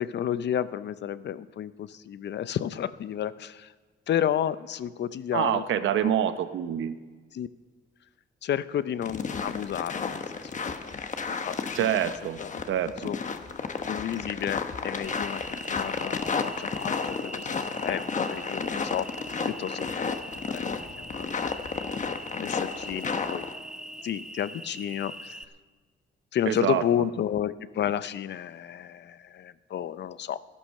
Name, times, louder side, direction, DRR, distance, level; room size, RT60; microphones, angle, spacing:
voice 1, 0.0-3.7 4.1-5.6 6.0-6.1 7.3-7.5 8.4-10.2 10.7-10.8 11.4-12.5 12.8-13.2 13.9-19.1 19.5-22.0 22.3-23.4 24.0-25.4 26.3-30.4, left 10 dB, 65° left, 15 dB, 0.6 m, -32 dB
voice 2, 5.3-7.0 11.7-12.4 12.7-13.1 26.5-26.8, right 10 dB, 85° right, 11 dB, 0.8 m, -26 dB
sound 1, 9.0-23.5, left 5 dB, 40° left, 1.0 m, -32 dB
Cricket, 15.0-25.4, right 1 dB, 5° right, 0.6 m, -41 dB
13.5 x 11.0 x 6.5 m, 1.4 s
cardioid pair, 100°, 19 cm